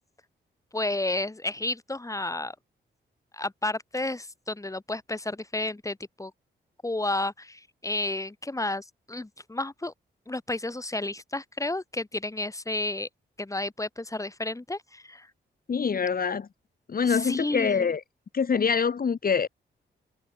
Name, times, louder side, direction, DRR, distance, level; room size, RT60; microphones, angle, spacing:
voice 1, 0.7-2.5 3.3-6.3 6.8-9.9 10.3-13.1 13.4-15.3 17.0-17.9, left 2 dB, 15° left, 7.8 m, -31 dB
voice 2, 15.7-16.5 16.9-18.0 18.3-19.5, left 6 dB, 50° left, 3.8 m, -25 dB
cardioid pair, 85°, 19 cm